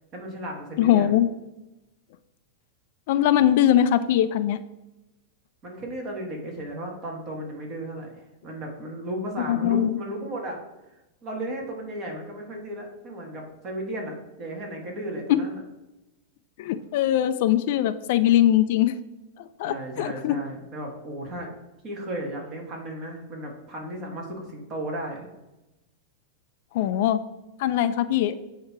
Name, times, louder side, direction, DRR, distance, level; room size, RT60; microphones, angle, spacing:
voice 1, 0.1-1.2 5.6-10.6 11.2-15.6 19.6-21.5 21.8-25.3, right 1 dB, 30° right, 0 dB, 1.4 m, -35 dB
voice 2, 0.8-1.3 3.1-4.6 9.5-10.0 16.6-18.9 19.6-20.4 26.7-27.2 27.6-28.4, left 11 dB, 55° left, 12 dB, 0.3 m, -21 dB
8.0 x 2.8 x 4.5 m, 0.98 s
supercardioid pair, 160°, 0 cm